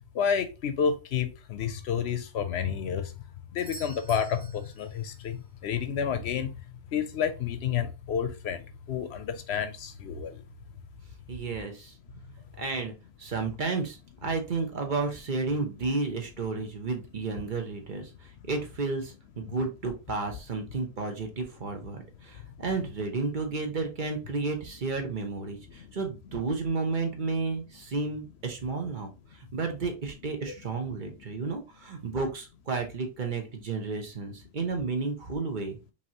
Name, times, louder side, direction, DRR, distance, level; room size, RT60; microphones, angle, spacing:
voice 1, 0.1-3.1 3.5-6.7 6.9-10.4 25.7-25.9, left 7 dB, 70° left, 0.9 m, -30 dB
Doorbell, 3.6-5.4 9.5-9.6, right 2 dB, 20° right, 0.8 m, -48 dB
voice 2, 11.3-11.9 12.6-12.9 13.2-35.8, right 4 dB, 45° right, 1.0 m, -32 dB
5.2 x 2.8 x 2.8 m
omnidirectional pair, 1.2 m